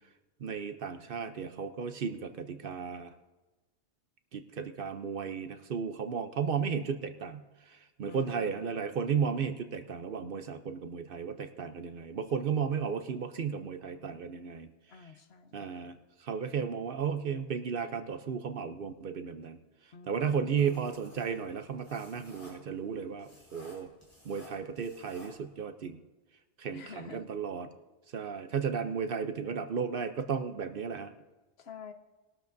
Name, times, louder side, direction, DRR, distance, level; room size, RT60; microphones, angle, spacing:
voice 1, 0.4-3.1 4.3-14.7 15.5-19.6 20.0-23.9 24.2-26.0 26.6-27.7 28.1-31.1, right 6 dB, 55° right, 9 dB, 0.8 m, -34 dB
voice 2, 8.1-8.8 14.9-15.9 19.9-20.8 26.7-27.3 31.6-31.9, left 5 dB, 65° left, 9 dB, 1.0 m, -49 dB
sound 1, 20.6-25.6, equal, 15° left, 4.5 m, -56 dB
20.5 x 12.5 x 2.6 m, 1.2 s
omnidirectional pair, 1.2 m